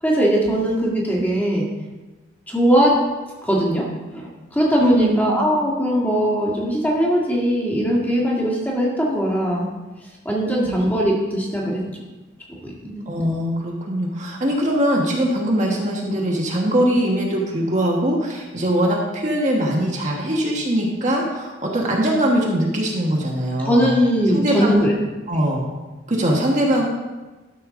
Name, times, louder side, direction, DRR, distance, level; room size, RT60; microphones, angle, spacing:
voice 1, 0.0-1.7 2.5-2.9 3.4-9.7 10.3-12.0 12.6-13.1 23.6-24.9, equal, 10° left, -4 dB, 1.8 m, -20 dB
voice 2, 4.8-5.4 10.6-10.9 13.1-23.9 24.3-24.9 25.3-25.7 26.1-26.8, right 1 dB, 40° right, -2 dB, 1.4 m, -21 dB
12.5 x 6.8 x 3.8 m, 1.2 s
head